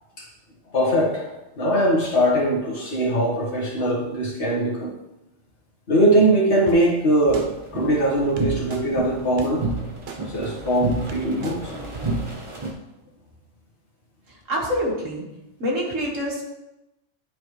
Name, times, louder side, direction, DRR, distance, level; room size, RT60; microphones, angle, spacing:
voice 1, 0.7-4.9 5.9-9.7 10.3-11.7, right 1 dB, 60° left, -3 dB, 1.7 m, -21 dB
sound 1, 6.7-6.8 7.3-7.5 8.4-8.8 9.4-9.5 10.1-10.2 10.8-10.9 11.1-11.6 11.9-12.0, right 5 dB, 55° right, 0.9 m, -35 dB
sound 2, 7.3-12.7, right 2 dB, 25° right, 0.9 m, -30 dB
voice 2, 14.5-15.2 15.6-16.4, equal, 70° right, -3 dB, 2.0 m, -25 dB
10.5 x 4.2 x 3.2 m, 0.94 s
omnidirectional pair, 1.3 m